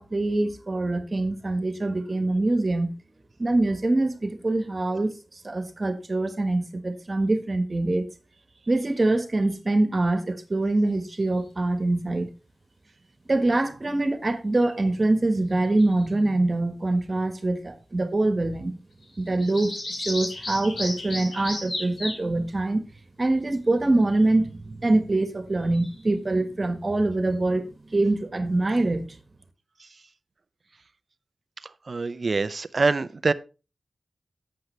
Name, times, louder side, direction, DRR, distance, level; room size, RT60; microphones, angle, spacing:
voice 1, 0.0-2.9 3.4-8.0 8.7-12.3 13.3-18.7 19.2-22.8 23.2-29.1, right 2 dB, 45° right, 1.5 m, -24 dB
sound 1, 10.9-11.2 14.6-14.9 15.5-16.1 19.0-22.2 24.0-24.3 25.6-26.0, left 1 dB, 90° left, 3.9 m, -35 dB
voice 2, 31.6-33.3, right 3 dB, 60° right, 0.6 m, -25 dB
11.5 x 7.8 x 3.3 m
cardioid pair, 50°, 0 cm